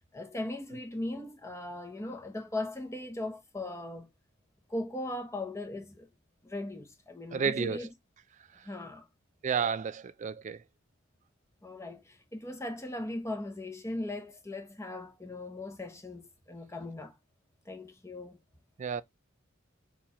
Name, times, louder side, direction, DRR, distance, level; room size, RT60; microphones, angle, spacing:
voice 1, 0.1-4.1 4.7-6.1 6.4-7.9 8.6-9.0 11.6-17.1 17.7-18.4, left 2 dB, 15° left, 0.8 m, -38 dB
voice 2, 7.3-7.9 9.4-10.6 18.8-19.0, right 6 dB, 35° right, 0.3 m, -31 dB
4.5 x 2.4 x 4.1 m
head